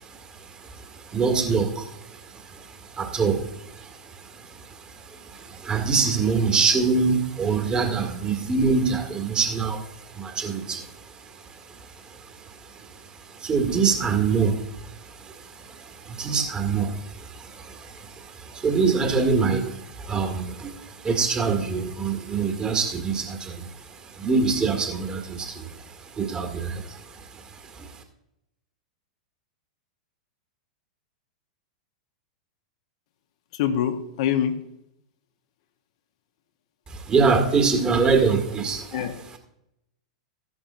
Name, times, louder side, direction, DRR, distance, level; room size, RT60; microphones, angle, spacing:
voice 1, 0.0-27.9 36.9-39.0, right 5 dB, 20° right, 5 dB, 1.9 m, -26 dB
voice 2, 33.5-34.6 38.9-39.1, left 9 dB, 55° left, 7 dB, 1.0 m, -25 dB
15.0 x 10.5 x 2.6 m, 0.83 s
figure-of-eight pair, 95°, 4 cm